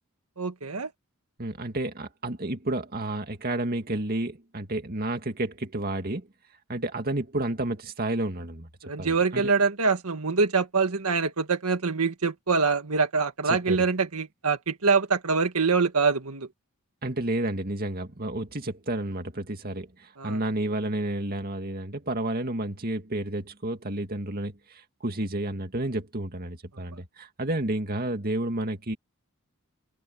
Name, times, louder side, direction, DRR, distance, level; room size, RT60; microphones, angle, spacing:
voice 1, 0.4-0.9 8.8-16.5 20.2-20.4, right 4 dB, 80° right, 1.8 m, -25 dB
voice 2, 1.4-6.3 6.7-8.7 9.0-9.4 13.5-13.8 17.0-29.0, right 1 dB, 45° right, 2.1 m, -31 dB
head